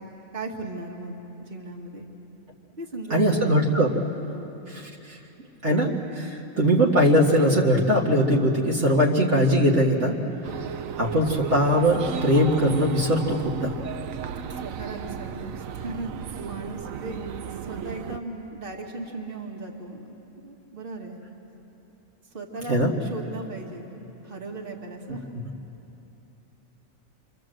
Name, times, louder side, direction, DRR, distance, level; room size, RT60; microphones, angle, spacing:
voice 1, 0.0-2.1 2.7-3.6 4.3-4.5 14.3-17.2 17.6-20.0 20.4-21.2 22.3-24.0 24.2-25.3, right 2 dB, 40° right, 1 dB, 2.2 m, -37 dB
voice 2, 3.1-4.0 4.7-4.9 5.6-10.2 11.0-13.7 22.7-22.9, equal, 60° right, -3 dB, 2.2 m, -21 dB
sound 1, 10.4-18.2, right 7 dB, 80° right, 1.2 m, -35 dB
28.0 x 24.5 x 7.8 m, 3.0 s
omnidirectional pair, 1.4 m